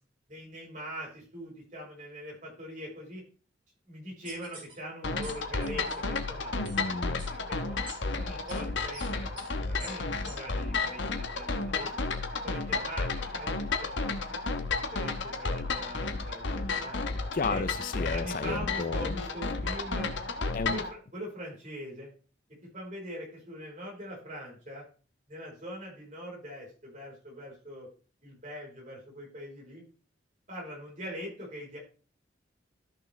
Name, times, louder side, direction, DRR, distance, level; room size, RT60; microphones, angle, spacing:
voice 1, 0.3-3.2 3.9-6.5 7.3-7.8 8.1-11.9 12.3-14.2 14.9-17.0 17.5-17.6 18.1-20.1 20.7-22.1 22.7-24.9 25.3-27.9 28.2-29.8 30.5-31.8, equal, 40° right, 4.2 m, -42 dB
sound 1, 4.2-4.7 5.2-5.3 5.6-6.0 6.6-6.8 7.2-7.3 7.9-8.0 8.5-8.6 8.9-9.1 9.4-9.5 9.8-9.9 10.2-10.3 10.8-10.9, right 2 dB, 25° right, 3.1 m, -45 dB
sound 2, 5.0-20.9, left 3 dB, 75° left, 1.1 m, -32 dB
voice 2, 6.6-7.2 17.3-19.1 20.5-20.8, left 4 dB, 45° left, 0.4 m, -33 dB
13.5 x 6.1 x 3.2 m
head